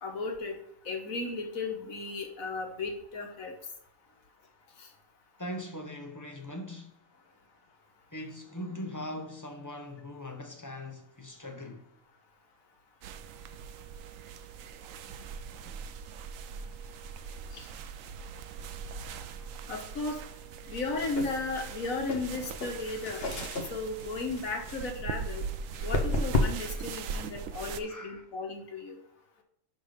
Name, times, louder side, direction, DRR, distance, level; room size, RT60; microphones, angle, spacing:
voice 1, 0.0-0.6 0.9-3.5 4.8-4.9 17.5-17.7 19.7-20.2 20.7-23.3 23.7-25.5 25.8-29.0, left 3 dB, 85° left, 1.7 m, -35 dB
voice 2, 5.4-6.9 8.1-11.8 15.1-15.8 25.7-26.0 26.6-26.9 27.4-28.2, left 1 dB, 15° left, 0.7 m, -42 dB
sound 1, 13.0-27.8, right 6 dB, 80° right, 1.0 m, -41 dB
sound 2, 20.7-26.8, left 2 dB, 50° left, 1.2 m, -34 dB
10.5 x 3.7 x 5.2 m
omnidirectional pair, 1.4 m